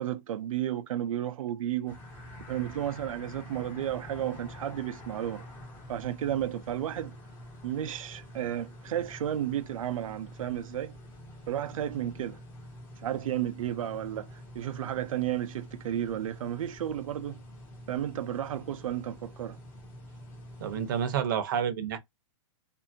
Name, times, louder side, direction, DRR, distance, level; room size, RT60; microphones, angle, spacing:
voice 1, 0.0-2.0 2.5-5.4 5.9-7.2 7.6-11.0 11.5-12.4 13.0-17.4 17.9-19.6, right 11 dB, 80° right, 0.5 m, -33 dB
sound 1, 1.9-21.2, left 1 dB, 15° left, 0.7 m, -47 dB
voice 2, 20.6-22.0, right 8 dB, 40° right, 0.7 m, -29 dB
2.6 x 2.6 x 2.5 m
hypercardioid pair, 175°, 17 cm